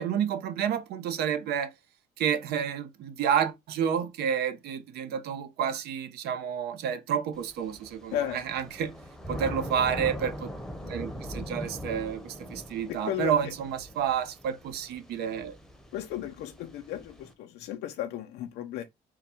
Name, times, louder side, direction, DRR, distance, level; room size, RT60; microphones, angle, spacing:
voice 1, 0.0-1.7 2.2-8.9 9.3-10.5 10.9-15.5, right 8 dB, 75° right, 0.7 m, -30 dB
Thunder / Rain, 7.4-17.3, equal, 5° left, 0.8 m, -41 dB
voice 2, 12.9-13.5 15.9-18.8, left 11 dB, 80° left, 0.5 m, -34 dB
3.8 x 2.2 x 4.3 m
cardioid pair, 110°, 17 cm